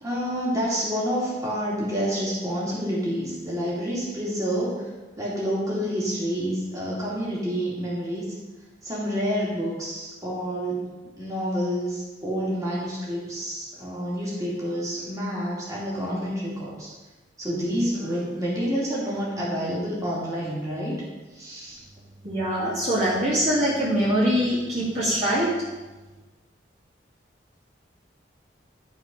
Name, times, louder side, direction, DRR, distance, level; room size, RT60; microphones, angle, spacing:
voice 1, 0.0-4.9 5.2-8.2 8.8-10.8 11.1-16.9 17.4-21.0 21.3-21.8, equal, 20° right, -7 dB, 2.5 m, -28 dB
voice 2, 22.2-25.5, equal, 40° right, -8 dB, 2.1 m, -23 dB
12.0 x 4.7 x 5.3 m, 1.2 s
head